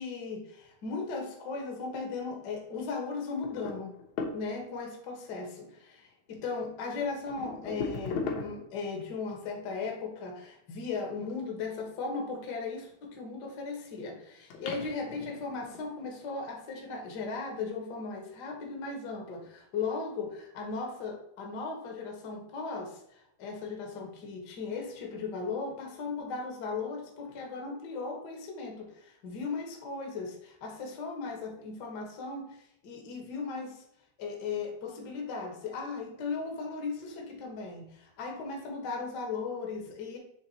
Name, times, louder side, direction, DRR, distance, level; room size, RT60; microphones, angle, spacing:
voice 1, 0.0-3.9 4.3-23.0 23.4-32.6 32.8-33.8 34.2-40.2, left 4 dB, 50° left, 1 dB, 1.3 m, -37 dB
sound 1, 3.4-4.8 6.3-6.4 7.0-8.9 12.7-13.4 14.0-14.1 14.5-16.5 17.4-17.7 18.6-18.7 19.1-19.2, left 4 dB, 65° left, 2.1 m, -39 dB
7.3 x 3.4 x 4.1 m, 0.78 s
omnidirectional pair, 3.6 m